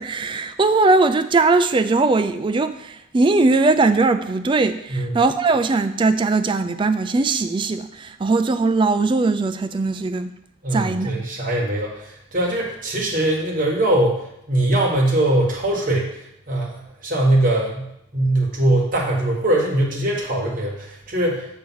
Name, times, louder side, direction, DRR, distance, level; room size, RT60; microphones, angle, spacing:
voice 1, 0.0-10.3 10.7-11.3, right 3 dB, 25° right, 0.3 m, -20 dB
voice 2, 10.6-14.2 14.5-16.1 16.5-17.9 18.1-21.5, right 1 dB, 40° right, 1.5 m, -21 dB
6.9 x 3.4 x 6.2 m
head